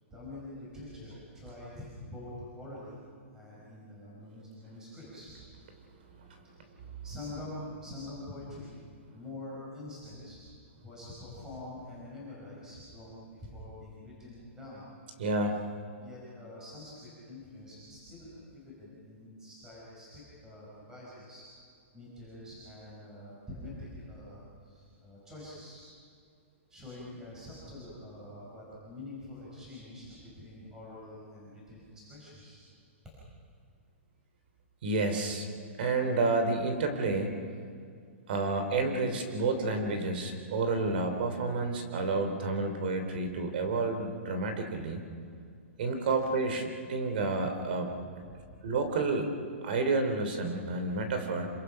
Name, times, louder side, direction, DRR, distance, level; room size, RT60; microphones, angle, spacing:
voice 1, 0.1-3.0 3.3-5.3 7.0-8.8 9.1-10.4 10.8-14.8 16.0-21.4 21.9-25.8 26.7-32.6 48.2-48.6, left 1 dB, 5° right, -7 dB, 5.2 m, -46 dB
voice 2, 15.2-15.6 34.8-35.5 35.8-37.3 38.3-45.0 45.8-47.9 48.6-49.3 49.6-51.5, right 3 dB, 45° right, 6 dB, 3.2 m, -30 dB
27.5 x 24.0 x 5.8 m, 2.3 s
hypercardioid pair, 180°, 7 cm